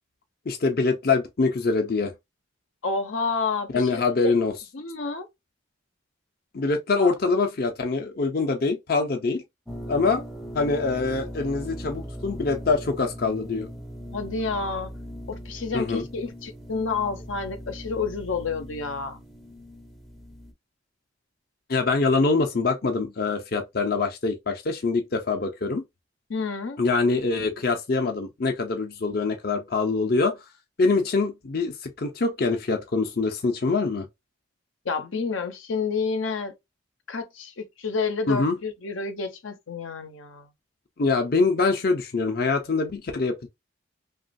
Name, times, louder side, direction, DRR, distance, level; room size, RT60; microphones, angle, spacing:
voice 1, 0.5-2.1 3.7-4.5 6.5-9.4 9.9-10.2 10.5-13.7 15.7-16.0 21.7-25.8 26.8-30.4 30.8-34.1 38.3-38.6 41.0-43.5, left 3 dB, 50° left, 0.5 m, -24 dB
voice 2, 2.8-4.0 4.7-5.3 7.0-7.1 14.1-14.9 15.3-19.2 26.3-26.8 34.8-36.5 37.1-40.5, left 4 dB, 85° left, 0.7 m, -29 dB
sound 1, 9.7-20.5, equal, ahead, 0.5 m, -39 dB
3.0 x 2.4 x 2.5 m
head